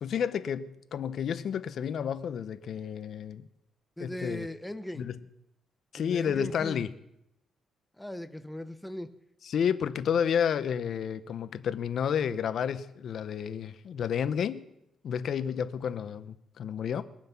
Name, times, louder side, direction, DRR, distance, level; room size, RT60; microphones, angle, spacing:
voice 1, 0.0-3.5 4.0-4.5 5.0-5.2 5.9-6.9 9.4-14.7 15.0-17.0, left 8 dB, 60° left, 0.8 m, -31 dB
voice 2, 4.0-5.1 6.0-6.9 8.0-9.1, left 1 dB, 5° left, 0.8 m, -38 dB
21.5 x 7.4 x 5.9 m
cardioid pair, 90°, 0 cm